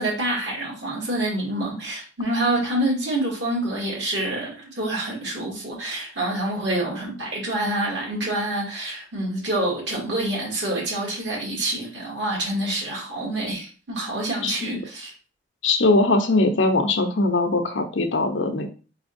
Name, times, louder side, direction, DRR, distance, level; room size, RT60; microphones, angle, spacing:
voice 1, 0.0-15.1, right 1 dB, 70° right, -3 dB, 2.1 m, -27 dB
voice 2, 14.4-14.8 15.6-18.7, left 2 dB, 80° left, 5 dB, 0.8 m, -21 dB
4.3 x 4.0 x 2.6 m, 0.36 s
head